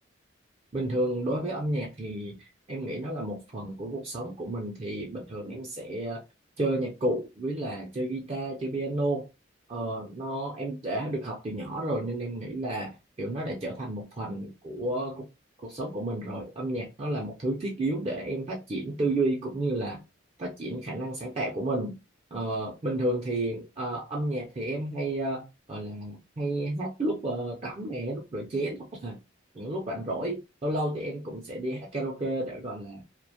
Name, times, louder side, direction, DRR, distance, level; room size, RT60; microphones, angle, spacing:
voice 1, 0.7-6.2 6.6-9.3 9.7-15.3 15.6-20.0 20.4-22.0 22.3-29.2 29.5-33.0, right 1 dB, 30° right, 0.4 m, -31 dB
2.4 x 2.1 x 2.7 m
head